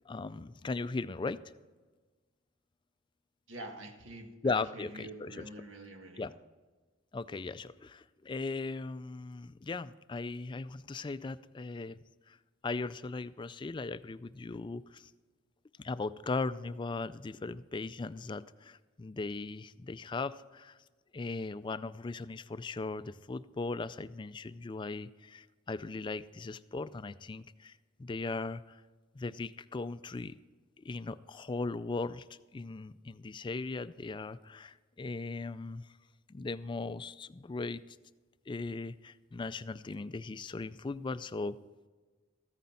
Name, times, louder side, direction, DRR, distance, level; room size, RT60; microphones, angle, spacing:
voice 1, 0.1-1.4 4.4-5.5 6.2-6.3 7.1-12.4 12.6-15.1 15.8-20.8 21.1-27.7 28.0-28.8 29.1-30.3 30.8-32.2 32.5-35.9 36.3-37.8 38.5-41.6, left 3 dB, 25° left, 15 dB, 0.3 m, -38 dB
voice 2, 3.5-6.3, right 1 dB, 80° right, 4 dB, 1.6 m, -46 dB
14.0 x 9.3 x 4.3 m, 1.3 s
head